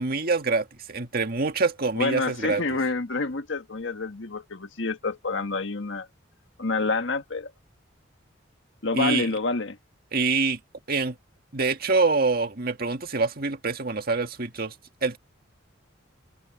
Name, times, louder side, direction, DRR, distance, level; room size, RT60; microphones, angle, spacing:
voice 1, 0.0-2.6 8.9-9.3 10.1-10.6 10.9-11.2 11.5-14.7 15.0-15.2, right 4 dB, 50° right, 1.8 m, -25 dB
voice 2, 1.9-6.1 6.6-7.5 8.8-9.8, left 3 dB, 70° left, 1.6 m, -28 dB
head